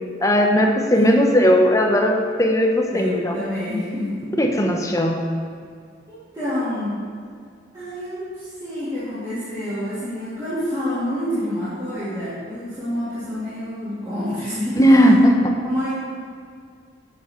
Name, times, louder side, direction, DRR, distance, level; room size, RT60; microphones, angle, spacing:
voice 1, 0.2-3.3 4.4-5.2 14.8-15.6, equal, 15° left, 2 dB, 0.8 m, -17 dB
voice 2, 0.9-1.3 2.9-4.3 6.1-7.0 7.7-14.8 15.6-15.9, left 1 dB, 15° right, -14 dB, 2.5 m, -28 dB
9.3 x 7.2 x 4.5 m, 2.2 s
head